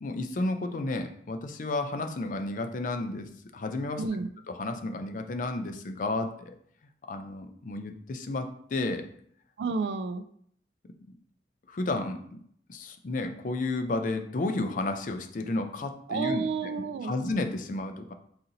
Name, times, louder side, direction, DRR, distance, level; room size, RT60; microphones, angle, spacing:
voice 1, 0.0-4.0 4.5-6.6 7.1-9.1 11.7-12.4 12.7-16.4 17.0-18.1, left 2 dB, 45° left, 7 dB, 0.4 m, -32 dB
voice 2, 4.0-4.3 9.6-10.2 16.1-17.1, right 4 dB, 70° right, 11 dB, 0.3 m, -30 dB
4.1 x 2.7 x 3.8 m, 0.64 s
head